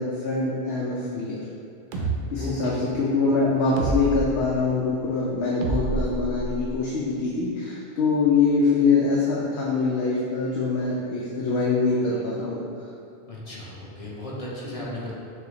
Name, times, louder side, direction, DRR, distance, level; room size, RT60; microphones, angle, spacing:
voice 1, 0.0-1.4 2.3-12.6 14.8-14.9, left 4 dB, 80° left, -4 dB, 0.8 m, -24 dB
sound 1, 1.9-2.2 3.8-4.3 5.6-6.8, right 2 dB, 60° right, 0.7 m, -27 dB
voice 2, 2.4-2.8 13.3-15.1, equal, 40° left, -6 dB, 0.8 m, -35 dB
6.3 x 2.2 x 3.0 m, 2.5 s
omnidirectional pair, 1.1 m